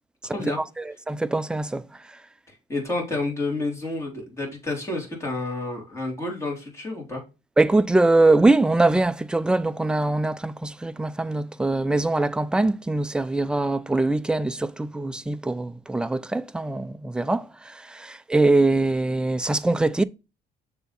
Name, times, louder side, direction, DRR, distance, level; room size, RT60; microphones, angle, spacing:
voice 1, 0.8-1.9 7.6-20.0, right 2 dB, 5° right, 0.3 m, -22 dB
voice 2, 2.5-7.2, left 2 dB, 15° left, 3.2 m, -30 dB
6.8 x 3.5 x 4.1 m
cardioid pair, 110°, 17 cm